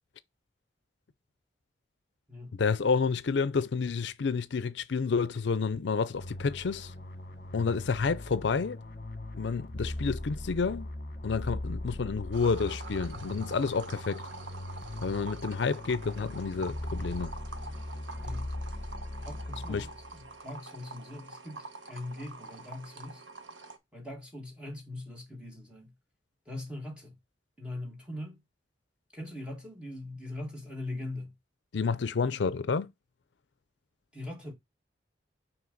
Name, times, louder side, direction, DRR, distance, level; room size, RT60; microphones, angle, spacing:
voice 1, 2.6-6.9 7.5-8.8 9.4-10.9 11.2-14.3 15.0-17.3 19.7-19.9 31.7-32.9, left 5 dB, 70° left, 0.5 m, -29 dB
sound 1, 6.1-20.3, left 1 dB, 45° left, 1.2 m, -39 dB
sound 2, 12.3-23.8, right 3 dB, 80° right, 1.0 m, -46 dB
voice 2, 19.3-23.2 23.9-25.9 26.5-27.2 27.6-28.4 29.1-31.3 34.1-34.5, left 1 dB, 5° right, 1.8 m, -41 dB
5.9 x 4.8 x 3.9 m
head